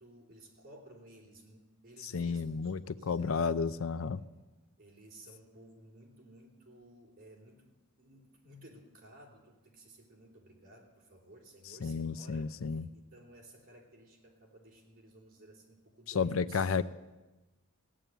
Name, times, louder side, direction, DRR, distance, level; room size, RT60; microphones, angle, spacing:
voice 1, 0.0-3.6 4.0-4.2 4.8-7.7 8.0-12.5 12.9-16.7, right 1 dB, 45° right, 0 dB, 3.4 m, -56 dB
voice 2, 2.0-4.2 11.8-12.9 16.1-16.8, left 5 dB, 70° left, 15 dB, 0.5 m, -32 dB
16.5 x 9.1 x 9.1 m, 1.1 s
head